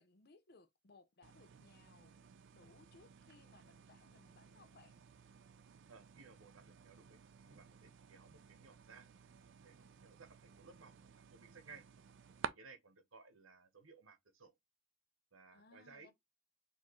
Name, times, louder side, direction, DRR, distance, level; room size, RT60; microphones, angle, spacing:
voice 1, 0.0-2.2 2.5-5.0 15.5-16.1, left 3 dB, 50° left, 0.7 m, -65 dB
sound 1, 1.2-12.5, right 7 dB, 65° right, 0.4 m, -54 dB
voice 2, 5.9-9.1 9.6-11.8 12.4-14.5 15.3-16.1, right 4 dB, 85° right, 1.1 m, -60 dB
4.4 x 2.9 x 2.9 m
head